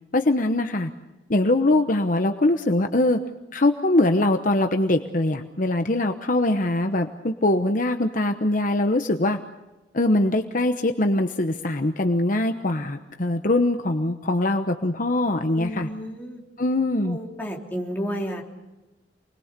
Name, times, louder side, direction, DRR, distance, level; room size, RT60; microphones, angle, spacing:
voice 1, 0.1-0.9 1.3-3.2 3.5-9.4 9.9-15.9 16.6-17.2, left 2 dB, 45° left, 6 dB, 1.0 m, -22 dB
voice 2, 15.5-16.4 17.0-18.4, equal, 10° left, -2 dB, 3.4 m, -31 dB
28.0 x 21.0 x 6.8 m, 1.1 s
head